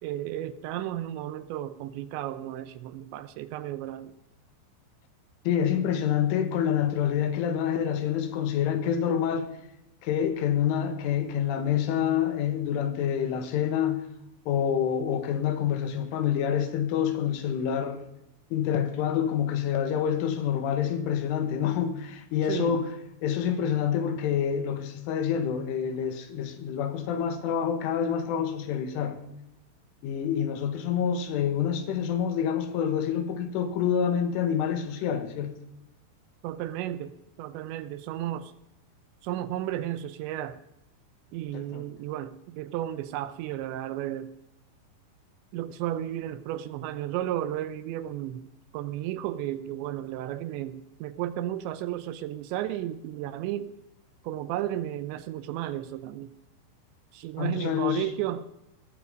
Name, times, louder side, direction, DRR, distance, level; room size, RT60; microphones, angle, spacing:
voice 1, 0.0-4.1 22.5-22.8 36.4-38.5 39.2-40.6 41.3-44.3 45.5-48.5 48.7-53.7 54.2-56.3 57.1-58.5, right 12 dB, 80° right, 2.8 m, -33 dB
voice 2, 5.5-9.5 10.0-14.0 14.5-18.0 18.5-22.9 23.2-29.2 30.0-35.6 41.5-41.8 57.4-58.0, left 8 dB, 90° left, 4.1 m, -27 dB
19.5 x 14.5 x 5.2 m
omnidirectional pair, 5.5 m